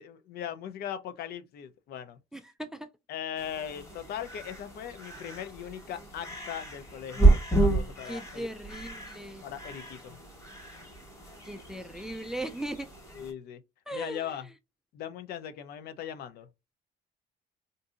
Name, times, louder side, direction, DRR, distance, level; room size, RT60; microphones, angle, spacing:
voice 1, 0.0-2.2 3.1-8.5 9.4-10.2 13.1-13.6 13.9-14.5 14.9-16.5, left 9 dB, 70° left, 0.5 m, -39 dB
voice 2, 2.3-2.9 8.1-9.4 11.4-12.9 13.9-14.4, right 1 dB, 5° right, 0.3 m, -38 dB
sound 1, 3.4-13.3, right 2 dB, 15° left, 1.4 m, -30 dB
3.8 x 2.6 x 2.4 m
cardioid pair, 110°, 17 cm